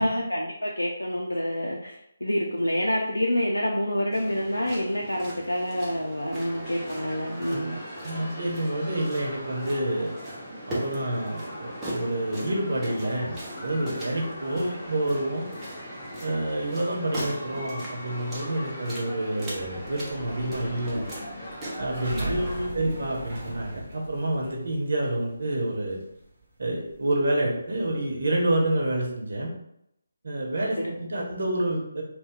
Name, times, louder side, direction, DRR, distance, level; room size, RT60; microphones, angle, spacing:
voice 1, 0.0-7.8 14.5-14.8 22.3-22.8 31.1-31.2, equal, 90° left, -2 dB, 0.4 m, -28 dB
sound 1, 4.1-22.6, right 1 dB, 10° right, 0.7 m, -40 dB
sound 2, 6.4-22.7, left 1 dB, 20° left, 1.3 m, -41 dB
voice 2, 7.5-10.1 10.7-15.5 16.2-21.1 21.8-22.4 22.7-26.0 26.6-29.5 30.2-32.0, right 1 dB, 60° right, -1 dB, 0.9 m, -28 dB
sound 3, 19.6-28.4, right 1 dB, 35° right, 0.9 m, -40 dB
2.7 x 2.2 x 3.7 m, 0.77 s
figure-of-eight pair, 150°, 0 cm